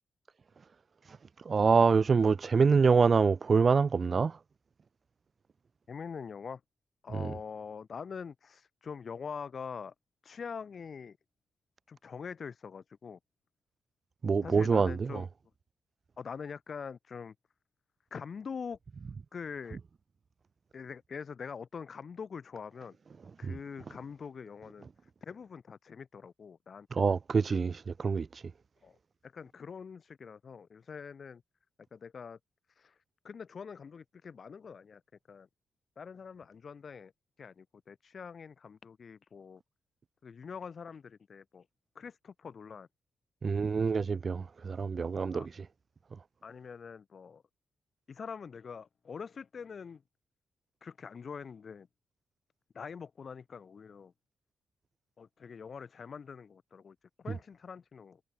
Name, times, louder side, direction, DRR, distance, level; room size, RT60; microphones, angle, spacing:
voice 1, 1.5-4.4 7.2-7.3 14.2-15.2 23.4-23.5 26.9-28.4 43.4-45.6, right 5 dB, 40° right, 0.3 m, -26 dB
voice 2, 5.9-6.6 7.0-9.9 10.2-11.2 11.9-13.2 14.4-15.3 16.2-17.3 18.1-18.8 19.3-19.8 20.7-23.0 23.4-24.9 25.2-27.2 28.8-29.0 29.2-31.4 31.9-32.4 32.8-32.9 33.2-35.0 35.3-35.5 36.0-37.1 37.4-39.6 40.2-41.7 41.9-42.9 45.3-45.5 46.4-47.4 48.1-50.0 50.8-51.9 52.7-54.1 55.2-58.2, left 6 dB, 45° left, 2.9 m, -44 dB
cardioid pair, 130°, 0 cm